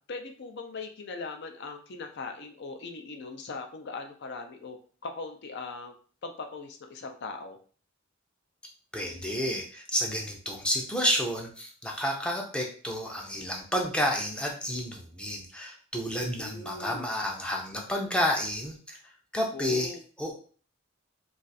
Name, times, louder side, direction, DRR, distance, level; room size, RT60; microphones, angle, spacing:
voice 1, 0.1-4.8 5.0-5.9 6.2-7.6 16.4-17.1 19.5-20.0, left 3 dB, 55° left, 5 dB, 0.5 m, -40 dB
voice 2, 8.9-19.9 20.2-20.3, equal, 5° left, 0 dB, 0.5 m, -30 dB
2.4 x 2.4 x 4.0 m, 0.42 s
head